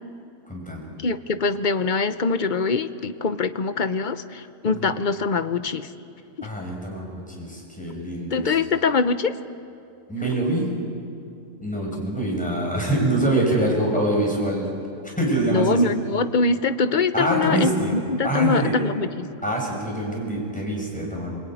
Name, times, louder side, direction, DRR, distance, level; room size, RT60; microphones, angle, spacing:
voice 1, 0.5-0.9 4.6-4.9 6.4-8.6 10.1-10.7 11.6-14.7 15.0-15.9 17.1-17.9 18.2-18.8 19.4-21.4, right 1 dB, 5° left, -2 dB, 6.8 m, -25 dB
voice 2, 1.0-5.9 6.4-6.5 8.3-9.3 15.5-19.3, left 4 dB, 40° left, 11 dB, 0.9 m, -23 dB
25.5 x 24.0 x 9.3 m, 2.6 s
omnidirectional pair, 1.4 m